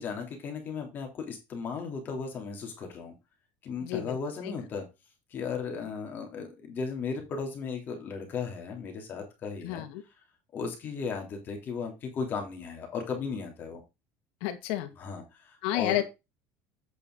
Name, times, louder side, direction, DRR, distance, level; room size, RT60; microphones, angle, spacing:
voice 1, 0.0-3.1 3.6-4.9 5.3-9.8 10.5-13.8 14.9-16.0, left 5 dB, 35° left, 3 dB, 3.2 m, -36 dB
voice 2, 3.8-4.2 9.6-9.9 14.4-14.9 15.6-16.0, left 13 dB, 75° left, 8 dB, 2.0 m, -30 dB
8.6 x 6.6 x 3.9 m, 0.24 s
cardioid pair, 150°, 6 cm